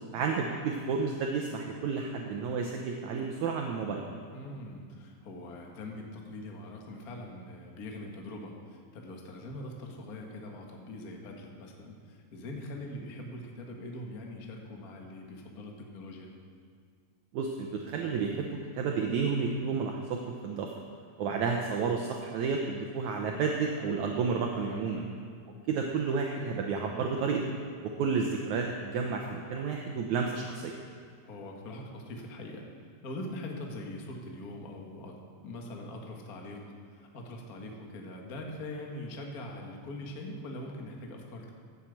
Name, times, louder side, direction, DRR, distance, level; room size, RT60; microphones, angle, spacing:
voice 1, 0.1-4.1 17.3-20.7 21.2-25.0 25.7-27.4 27.8-30.7, right 5 dB, 80° right, 2 dB, 1.7 m, -31 dB
voice 2, 4.3-16.3 24.7-25.1 31.2-32.6 33.0-35.1 35.4-36.6 36.9-41.5, left 1 dB, 65° left, 1 dB, 0.9 m, -42 dB
13.0 x 7.5 x 7.9 m, 2.1 s
omnidirectional pair, 4.4 m